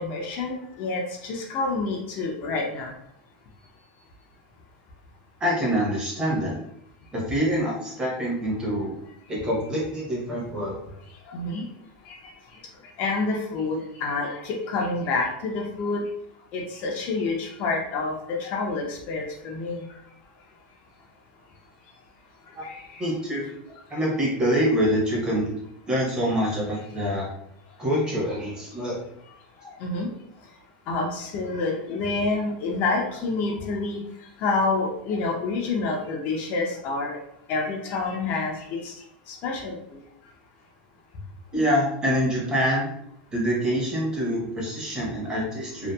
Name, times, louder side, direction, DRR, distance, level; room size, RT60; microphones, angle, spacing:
voice 1, 0.0-2.9 11.3-11.6 12.1-12.2 13.0-16.0 16.5-19.8 22.6-23.1 29.8-30.1 30.9-34.0 34.4-37.2 37.5-38.9 39.3-39.8, left 3 dB, 40° left, 0 dB, 0.4 m, -28 dB
voice 2, 5.4-6.6 7.1-9.0 9.3-10.8 22.6-22.7 23.0-23.5 23.9-25.5 25.9-27.3 27.8-29.0 41.5-42.9 43.3-45.9, equal, 15° right, -4 dB, 0.8 m, -25 dB
2.6 x 2.2 x 2.2 m, 0.74 s
supercardioid pair, 155°, 5 cm